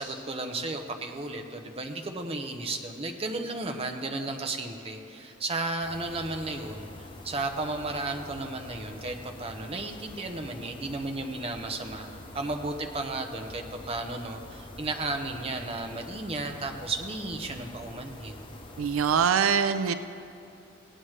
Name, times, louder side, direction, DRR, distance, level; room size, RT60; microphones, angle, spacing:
voice 1, 0.0-12.1 12.3-18.5, right 2 dB, 30° right, 4 dB, 0.7 m, -34 dB
sound 1, 5.8-19.3, left 2 dB, 25° left, 0.6 m, -46 dB
voice 2, 18.8-19.9, right 7 dB, 80° right, 11 dB, 0.4 m, -23 dB
17.5 x 8.8 x 3.2 m, 2.6 s
head